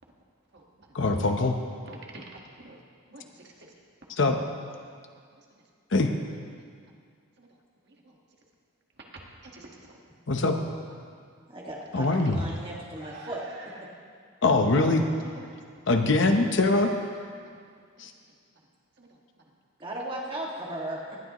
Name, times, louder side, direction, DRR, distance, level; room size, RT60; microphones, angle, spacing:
voice 1, 0.9-1.5 4.1-4.4 5.9-6.1 10.3-10.6 11.9-12.4 14.4-15.0 15.9-16.9 18.0-18.1, left 2 dB, 60° left, 5 dB, 0.8 m, -22 dB
voice 2, 1.9-2.8 3.1-3.2 7.4-7.5 9.4-10.0 12.0-12.1 13.0-13.7 15.0-15.4 19.0-19.1, right 2 dB, 50° right, 0 dB, 1.5 m, -45 dB
voice 3, 11.5-13.7 19.8-21.2, right 1 dB, 25° right, -4 dB, 1.9 m, -36 dB
18.5 x 12.0 x 3.0 m, 2.1 s
head